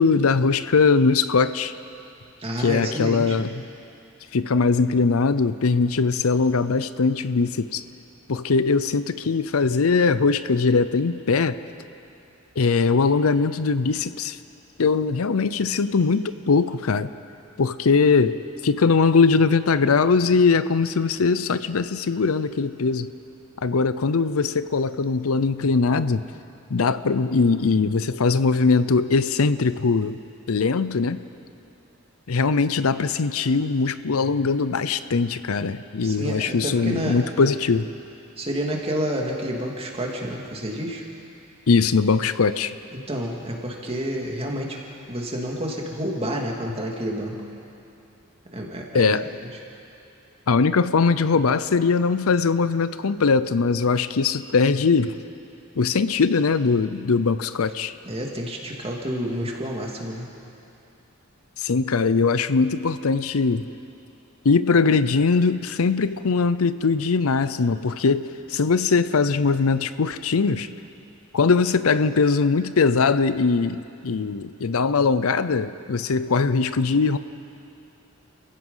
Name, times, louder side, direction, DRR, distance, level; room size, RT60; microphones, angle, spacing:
voice 1, 0.0-1.7 2.6-3.5 4.3-7.8 8.3-11.6 12.6-14.4 14.8-17.1 17.6-18.4 18.6-23.1 23.6-26.2 26.7-30.2 30.5-31.2 32.3-37.9 41.7-42.7 48.9-49.3 50.5-55.2 55.8-57.9 61.6-63.6 64.4-70.7 71.3-77.2, left 4 dB, 80° left, 14 dB, 0.6 m, -21 dB
voice 2, 2.4-3.4 36.0-37.5 38.4-41.0 42.9-44.8 45.1-47.3 48.5-49.1 58.0-60.3, equal, 30° right, 0 dB, 2.5 m, -29 dB
29.0 x 16.0 x 5.6 m, 2.7 s
head